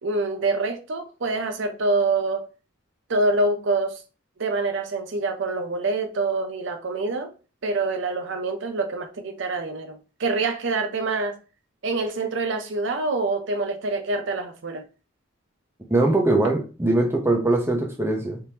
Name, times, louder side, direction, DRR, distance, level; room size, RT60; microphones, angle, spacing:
voice 1, 0.0-2.4 3.1-4.0 4.4-7.3 7.6-11.3 11.8-14.8, right 3 dB, 65° right, 0.5 m, -26 dB
voice 2, 15.9-18.4, right 2 dB, 10° right, 0.7 m, -21 dB
3.4 x 3.0 x 2.8 m
head